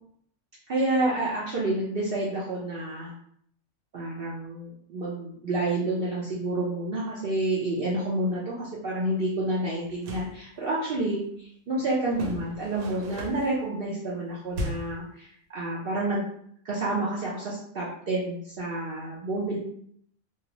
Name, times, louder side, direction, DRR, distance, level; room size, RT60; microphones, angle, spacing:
voice 1, 0.7-3.1 3.9-16.2 16.6-19.6, right 2 dB, 60° right, -5 dB, 0.6 m, -29 dB
sound 1, 9.8-10.4 12.1-13.6 14.5-15.0, equal, 85° right, 1.0 m, -36 dB
2.6 x 2.1 x 2.9 m, 0.66 s
omnidirectional pair, 1.4 m